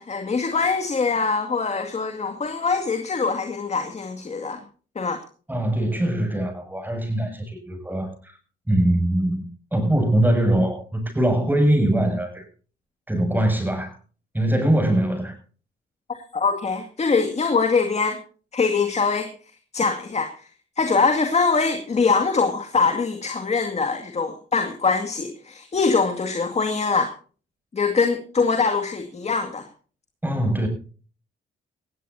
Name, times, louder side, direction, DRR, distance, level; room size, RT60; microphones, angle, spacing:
voice 1, 0.0-4.6 5.0-5.2 16.1-18.2 18.5-19.3 19.7-20.5 20.8-27.1 27.7-29.7, left 4 dB, 35° left, 2.2 m, -23 dB
voice 2, 5.5-8.4 8.7-12.5 13.1-13.9 14.3-15.3 30.2-30.7, right 1 dB, 10° right, 7.2 m, -22 dB
19.5 x 15.5 x 2.8 m
cardioid pair, 90°, 20 cm